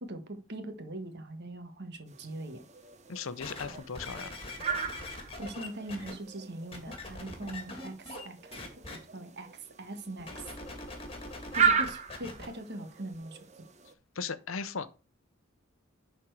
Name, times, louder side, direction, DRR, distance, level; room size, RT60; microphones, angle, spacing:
voice 1, 0.0-2.6 5.4-8.5 8.9-10.5 11.5-13.4, right 1 dB, 55° right, 1.5 m, -41 dB
sound 1, 2.1-13.9, right 7 dB, 35° right, 1.0 m, -36 dB
voice 2, 3.1-4.3 14.1-14.9, left 5 dB, 70° left, 0.8 m, -37 dB
sound 2, 3.4-6.1 6.7-8.2 8.5-9.0 10.2-12.5 13.1-13.2, left 2 dB, 30° left, 2.3 m, -42 dB
11.0 x 4.3 x 4.8 m
head